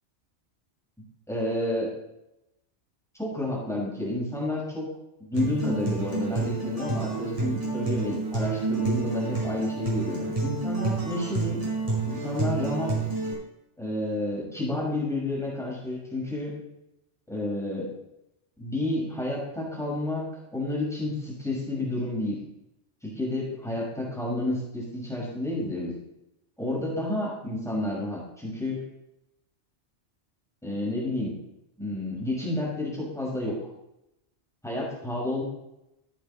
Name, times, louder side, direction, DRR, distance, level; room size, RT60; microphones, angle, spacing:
voice 1, 1.3-1.9 3.2-4.9 5.2-11.6 12.1-13.1 13.8-16.5 17.3-17.9 18.6-22.4 23.0-25.9 26.6-28.8 30.6-31.4 31.8-33.6 34.6-35.4, left 1 dB, ahead, -5 dB, 5.6 m, -30 dB
Acoustic guitar, 5.3-13.3, right 3 dB, 30° right, 5.4 m, -29 dB
14.0 x 9.5 x 4.2 m, 0.88 s
omnidirectional pair, 1.2 m